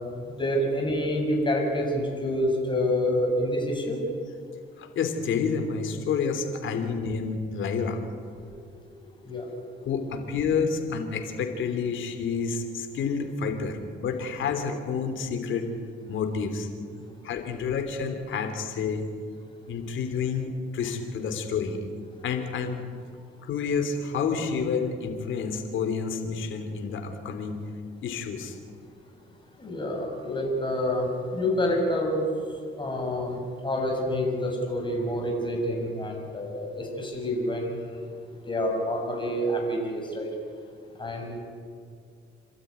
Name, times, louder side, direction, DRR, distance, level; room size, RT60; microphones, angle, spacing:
voice 1, 0.3-4.0 8.4-8.5 9.3-9.4 17.0-17.1 29.6-32.3 32.8-36.7 37.0-37.9 38.4-40.3 41.0-41.4, left 1 dB, 25° left, 0 dB, 6.8 m, -27 dB
voice 2, 4.8-8.0 9.8-15.7 16.1-16.7 17.2-19.1 19.7-21.9 22.2-22.8 23.4-27.6 28.0-28.6, left 5 dB, 75° left, 6 dB, 3.1 m, -29 dB
28.0 x 13.0 x 9.7 m, 2.2 s
cardioid pair, 90°, 20 cm